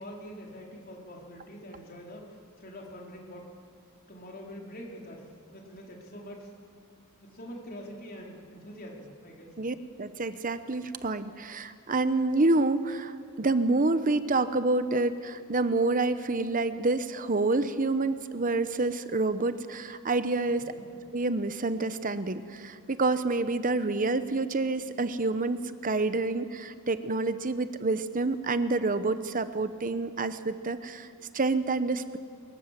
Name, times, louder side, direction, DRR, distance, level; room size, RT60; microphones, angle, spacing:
voice 1, 0.0-3.5 4.1-6.5 7.2-9.5 20.5-20.8, equal, 45° left, -1 dB, 4.1 m, -45 dB
voice 2, 9.6-20.6 21.1-31.1 31.3-32.2, right 3 dB, 40° right, 12 dB, 0.9 m, -28 dB
24.0 x 21.0 x 7.5 m, 2.1 s
head